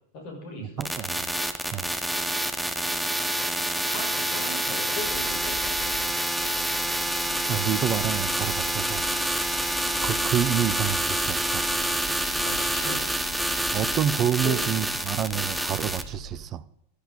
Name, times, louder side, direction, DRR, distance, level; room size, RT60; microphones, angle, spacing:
voice 1, 0.1-0.9 3.9-5.6 12.4-13.0 14.3-14.6, left 2 dB, 45° left, 6.4 m, -37 dB
sound 1, 0.8-16.0, right 1 dB, ahead, 1.3 m, -27 dB
voice 2, 0.8-1.1 1.7-1.9 7.5-9.1 10.0-11.7 13.7-16.6, right 10 dB, 30° right, 0.7 m, -28 dB
sound 2, 5.0-16.5, right 2 dB, 15° left, 3.7 m, -43 dB
15.0 x 13.0 x 5.2 m
figure-of-eight pair, 90°, 0 cm